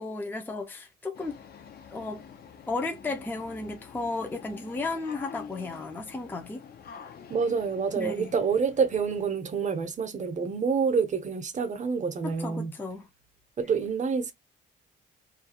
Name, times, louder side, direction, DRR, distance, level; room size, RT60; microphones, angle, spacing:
voice 1, 0.0-1.4 1.9-2.2 2.7-6.6 7.9-8.3 12.2-13.1, left 3 dB, 10° left, 0.5 m, -34 dB
sound 1, 1.1-9.3, left 7 dB, 50° left, 0.6 m, -48 dB
voice 2, 7.3-12.8 13.6-14.3, right 5 dB, 40° right, 0.7 m, -27 dB
2.5 x 2.3 x 2.7 m
cardioid pair, 90°, 20 cm